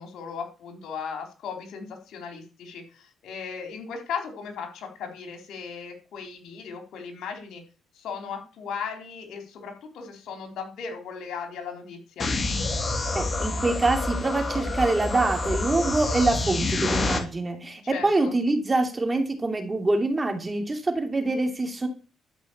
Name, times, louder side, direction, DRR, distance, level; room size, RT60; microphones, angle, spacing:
voice 1, 0.0-7.6 7.9-12.3 17.8-18.4, left 6 dB, 75° left, 4 dB, 3.9 m, -37 dB
sound 1, 12.2-17.2, left 2 dB, 30° left, 2.7 m, -27 dB
voice 2, 13.1-21.9, right 2 dB, 25° right, 6 dB, 2.7 m, -25 dB
12.0 x 5.5 x 8.7 m, 0.36 s
cardioid pair, 90°, 0 cm